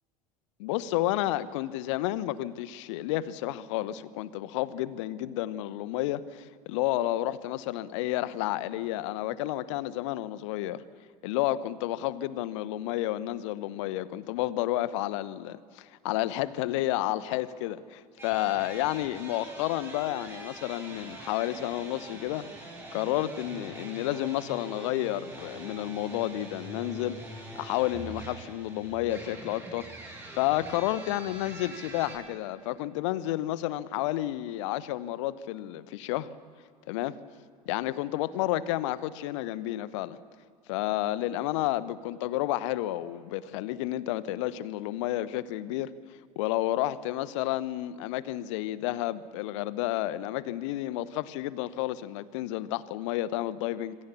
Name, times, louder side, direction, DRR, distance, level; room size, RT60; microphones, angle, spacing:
voice 1, 0.6-10.8 11.2-22.5 22.9-27.2 27.6-29.9 30.4-36.3 36.9-37.2 37.7-40.2 40.7-45.9 46.4-54.0, left 14 dB, 55° left, 17 dB, 1.0 m, -31 dB
sound 1, 18.2-32.2, right 2 dB, 10° right, 7.1 m, -44 dB
26.5 x 23.5 x 7.2 m, 2.1 s
figure-of-eight pair, 75°, 19 cm